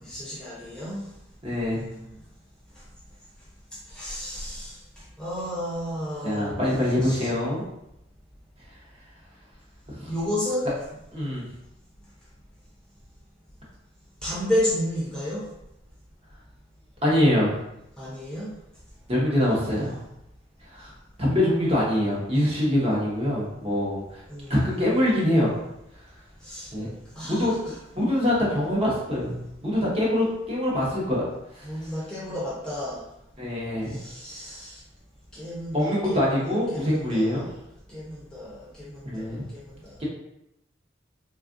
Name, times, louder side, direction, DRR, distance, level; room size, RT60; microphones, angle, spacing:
voice 1, 0.0-1.0 1.5-2.1 3.9-4.8 5.2-6.6 7.0-7.4 10.1-10.7 14.2-15.4 18.0-18.5 24.3-24.9 26.4-26.9 27.2-27.7 31.6-33.0 33.9-34.8 35.3-37.5 37.9-40.0, left 1 dB, 5° left, -8 dB, 0.5 m, -32 dB
voice 2, 1.4-1.8 6.2-7.6 9.9-10.1 11.1-11.4 17.0-17.5 19.1-20.0 20.7-20.9 21.2-24.2 24.5-25.5 26.7-26.9 27.2-31.2 31.5-31.7 33.4-34.0 35.7-37.4 39.0-39.4, left 1 dB, 30° right, -5 dB, 0.9 m, -24 dB
3.3 x 2.4 x 2.5 m, 0.84 s
head